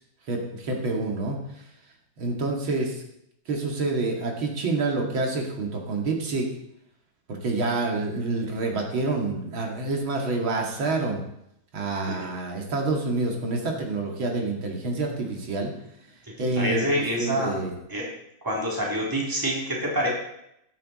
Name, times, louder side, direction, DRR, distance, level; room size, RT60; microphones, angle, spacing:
voice 1, 0.3-1.6 2.2-3.0 3.5-6.5 7.3-11.2 11.7-15.7 16.4-17.7, right 3 dB, 85° right, 1 dB, 3.0 m, -27 dB
voice 2, 16.2-17.5 17.9-18.1 18.4-20.1, equal, 10° right, -3 dB, 3.2 m, -27 dB
13.0 x 12.0 x 4.2 m, 0.80 s
omnidirectional pair, 2.1 m